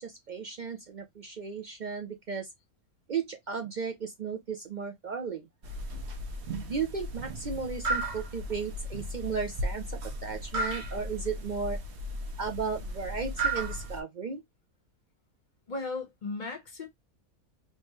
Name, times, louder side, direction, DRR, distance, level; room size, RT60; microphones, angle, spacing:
voice 1, 0.0-2.5 3.1-5.5 6.7-9.8 10.2-11.8 12.4-14.4, right 5 dB, 70° right, 0.4 m, -35 dB
sound 1, 5.6-14.0, right 1 dB, 55° right, 1.0 m, -35 dB
voice 2, 15.7-16.9, left 3 dB, 35° left, 1.1 m, -36 dB
3.4 x 2.9 x 3.1 m
omnidirectional pair, 1.6 m